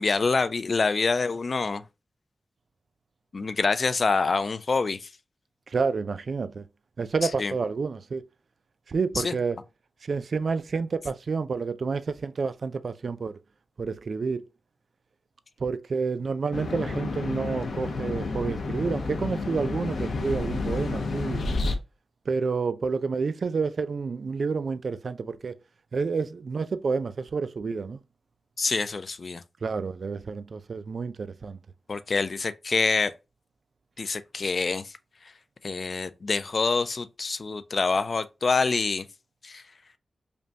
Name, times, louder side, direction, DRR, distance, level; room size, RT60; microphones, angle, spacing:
voice 1, 0.0-1.8 3.3-5.1 7.2-7.5 9.2-9.4 28.6-29.4 31.9-33.1 34.0-34.9 35.6-39.1 39.4-39.6, left 4 dB, 45° left, 0.4 m, -26 dB
voice 2, 5.7-6.6 7.0-8.2 8.9-9.6 10.0-13.3 13.8-14.4 15.6-21.4 22.3-25.6 25.9-28.0 29.6-31.6, right 4 dB, 55° right, 0.3 m, -29 dB
sound 1, 16.5-21.8, left 3 dB, 80° left, 0.7 m, -30 dB
5.1 x 2.2 x 2.7 m
wide cardioid pair, 130°, 0 cm